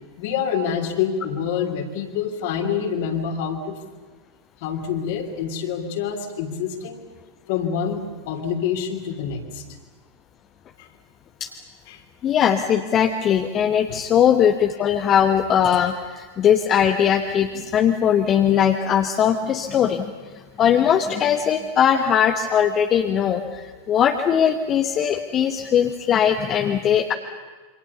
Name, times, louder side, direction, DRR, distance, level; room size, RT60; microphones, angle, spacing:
voice 1, 0.2-3.8 4.6-7.0 7.5-9.6 10.8-10.9 11.9-12.0 13.9-14.0, left 7 dB, 50° left, 6 dB, 3.2 m, -26 dB
voice 2, 12.2-27.1, left 8 dB, 30° left, 6 dB, 1.2 m, -20 dB
27.5 x 25.0 x 7.0 m, 1.4 s
figure-of-eight pair, 90°, 0 cm